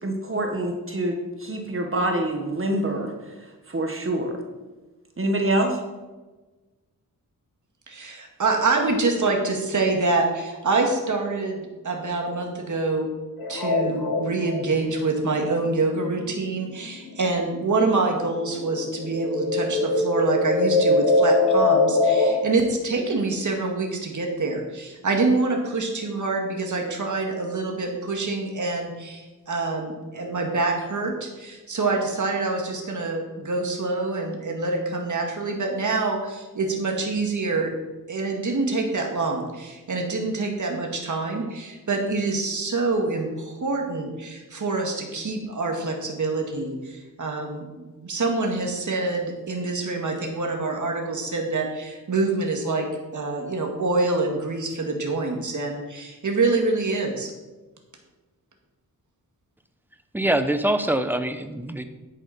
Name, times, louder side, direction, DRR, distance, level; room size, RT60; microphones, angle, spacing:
voice 1, 0.0-3.3 3.7-4.4 5.2-5.8, right 1 dB, 35° right, 3 dB, 1.5 m, -26 dB
voice 2, 7.9-13.1 13.5-37.7 38.1-52.9 53.1-57.3, right 3 dB, 55° right, 2 dB, 2.1 m, -26 dB
sound 1, 13.4-17.5 17.8-22.4, left 2 dB, 90° left, 2.0 m, -23 dB
voice 3, 60.1-61.8, right 1 dB, 5° right, 9 dB, 0.8 m, -24 dB
10.5 x 8.3 x 4.4 m, 1.2 s
wide cardioid pair, 90°, 36 cm